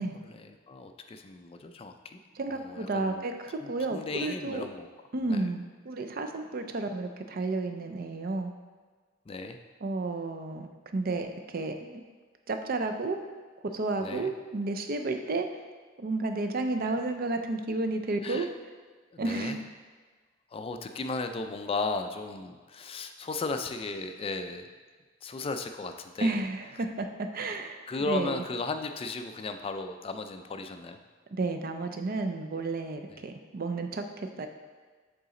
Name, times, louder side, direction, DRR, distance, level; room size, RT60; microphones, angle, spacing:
voice 1, 0.3-2.2 2.5-3.2 3.6-4.9 5.3-5.5 9.3-9.6 14.0-14.3 18.2-18.5 19.1-19.6 20.5-24.7 25.2-26.4 26.8-26.9 27.9-31.0 33.1-33.2, left 3 dB, 30° left, 7 dB, 0.4 m, -36 dB
voice 2, 2.4-3.3 3.7-4.7 5.1-8.5 9.8-12.0 12.5-13.2 13.7-15.5 16.0-18.5 19.2-19.7 26.2-28.4 31.3-34.5, right 3 dB, 50° right, 6 dB, 0.5 m, -32 dB
6.9 x 4.1 x 3.8 m, 1.5 s
head